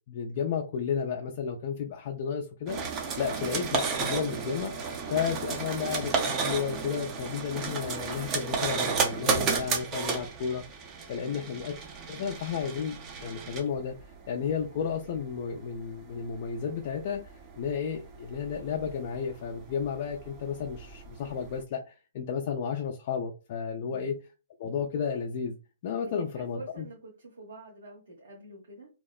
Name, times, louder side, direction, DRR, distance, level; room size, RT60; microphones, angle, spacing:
voice 1, 0.1-10.6 11.1-11.7 12.1-24.2 24.6-25.6 25.8-26.9, left 7 dB, 50° left, 0.4 m, -33 dB
sound 1, 2.7-21.6, right 5 dB, 25° right, 0.6 m, -34 dB
voice 2, 11.2-11.6 23.9-24.1 26.0-28.9, right 1 dB, 70° right, 0.9 m, -47 dB
2.8 x 2.0 x 2.3 m
hypercardioid pair, 130°, 0 cm